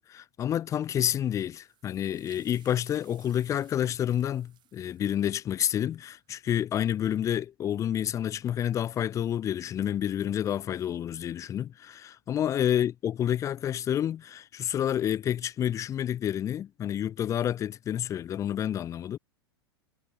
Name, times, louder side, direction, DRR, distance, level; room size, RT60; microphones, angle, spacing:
voice 1, 0.0-19.2, left 10 dB, 25° left, 0.5 m, -29 dB
sound 1, 1.3-6.8, right 12 dB, 35° right, 4.9 m, -62 dB
figure-of-eight pair, 95°, 14 cm